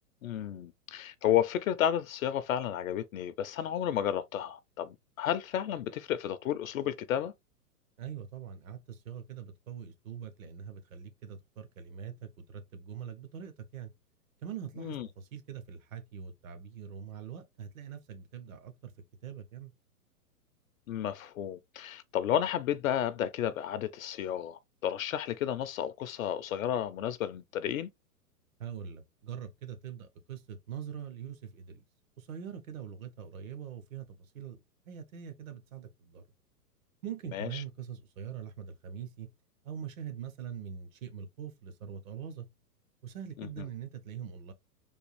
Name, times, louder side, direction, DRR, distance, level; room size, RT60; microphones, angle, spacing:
voice 1, 0.2-7.3 14.8-15.1 20.9-27.9 37.3-37.6 43.4-43.5, left 10 dB, 60° left, 0.5 m, -32 dB
voice 2, 8.0-13.9 14.4-18.9 19.2-19.7 28.6-31.8 32.2-36.2 37.0-39.3 39.6-42.5 43.0-44.5, right 8 dB, 60° right, 0.9 m, -43 dB
3.5 x 2.3 x 3.0 m
hypercardioid pair, 115°, 47 cm